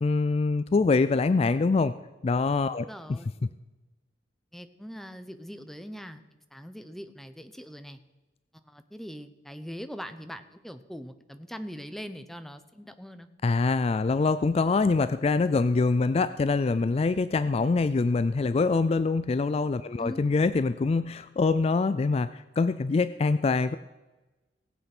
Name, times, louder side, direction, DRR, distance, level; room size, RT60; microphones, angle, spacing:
voice 1, 0.0-1.9 2.2-2.9 13.4-23.8, left 4 dB, 35° left, 13 dB, 0.3 m, -24 dB
voice 2, 2.9-3.3 4.5-6.2 6.5-8.0 8.6-13.3 20.0-20.3, equal, ahead, 9 dB, 0.7 m, -41 dB
18.5 x 8.1 x 6.0 m, 1.1 s
head